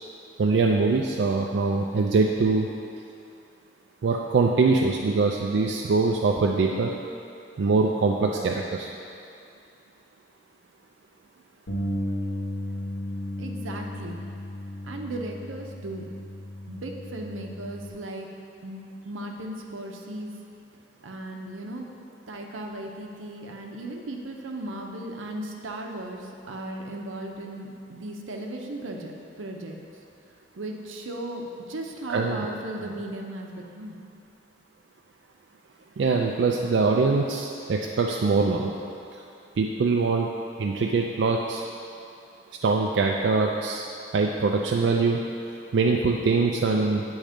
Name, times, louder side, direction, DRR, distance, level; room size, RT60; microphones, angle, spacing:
voice 1, 0.4-2.7 4.0-6.9 7.6-8.9 32.1-32.5 36.0-38.7 39.6-40.3 40.6-41.6 42.6-43.9 44.1-45.2 45.7-47.0, right 4 dB, 65° right, 0 dB, 0.3 m, -23 dB
Bass guitar, 11.7-17.9, left 1 dB, 85° left, 1.1 m, -34 dB
voice 2, 13.4-14.2 14.8-16.1 16.7-18.3 18.6-20.3 21.0-21.9 22.3-29.8 30.6-34.0, right 1 dB, 90° right, 1 dB, 0.7 m, -36 dB
8.7 x 3.2 x 5.0 m, 2.5 s
head